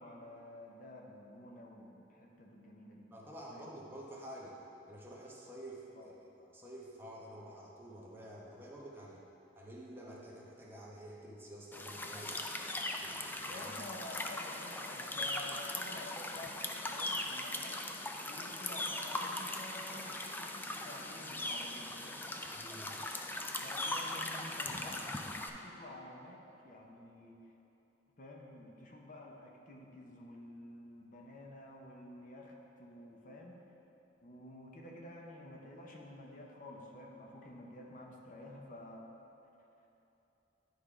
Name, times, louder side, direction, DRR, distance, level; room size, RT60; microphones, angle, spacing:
voice 1, 0.0-3.1 3.5-3.7 6.0-6.1 13.5-17.8 18.2-22.3 23.6-25.1 25.5-27.5 28.2-33.6 34.2-39.0, left 1 dB, 50° left, 0 dB, 0.7 m, -50 dB
voice 2, 3.1-4.6 4.9-6.1 6.4-9.2 9.6-12.4 13.0-13.6 22.5-22.9, right 1 dB, 15° right, -4 dB, 0.9 m, -49 dB
sound 1, 11.7-25.5, left 2 dB, 10° left, 0.3 m, -40 dB
10.0 x 3.6 x 4.9 m, 2.9 s
head